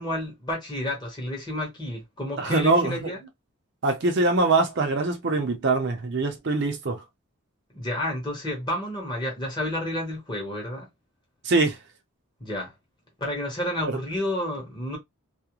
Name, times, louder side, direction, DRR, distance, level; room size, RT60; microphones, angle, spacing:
voice 1, 0.0-3.2 7.7-10.9 12.4-12.7 13.2-15.0, left 1 dB, 20° left, 0.9 m, -30 dB
voice 2, 2.4-3.0 3.8-7.0 11.4-11.8, right 3 dB, 50° right, 0.5 m, -23 dB
2.4 x 2.1 x 2.9 m
head